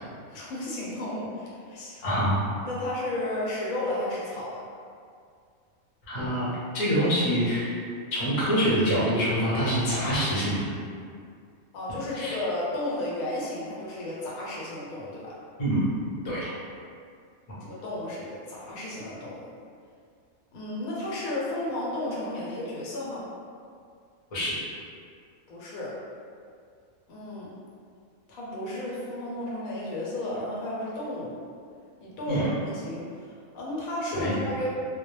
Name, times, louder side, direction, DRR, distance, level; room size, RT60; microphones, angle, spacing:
voice 1, 0.3-2.2 2.6-4.6 11.7-15.4 17.6-19.5 20.5-23.2 25.5-26.0 27.1-27.5 28.3-31.4 32.0-34.7, left 1 dB, 85° left, -6 dB, 1.1 m, -33 dB
voice 2, 2.0-2.4 6.1-6.5 6.7-7.8 8.1-10.7 12.1-12.4 15.6-15.9 16.2-16.5 24.3-24.5 32.3-32.4 34.1-34.4, equal, 35° left, -9 dB, 0.6 m, -25 dB
2.3 x 2.1 x 3.0 m, 2.3 s
omnidirectional pair, 1.4 m